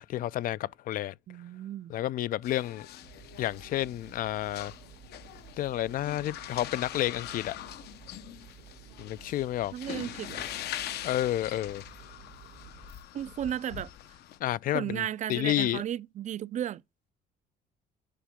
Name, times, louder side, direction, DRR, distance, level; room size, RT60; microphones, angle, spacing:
voice 1, 0.0-1.1 1.9-2.9 3.4-4.7 5.6-7.5 9.0-9.7 11.0-11.8 14.4-15.8, left 13 dB, 55° left, 0.4 m, -30 dB
voice 2, 1.3-1.9 9.7-10.5 13.1-13.9 14.7-16.8, right 11 dB, 45° right, 0.4 m, -34 dB
sound 1, 2.4-14.4, left 12 dB, 75° left, 0.9 m, -43 dB
sound 2, 3.0-13.0, right 8 dB, 85° right, 1.9 m, -53 dB
10.0 x 5.1 x 3.6 m
cardioid pair, 110°, 17 cm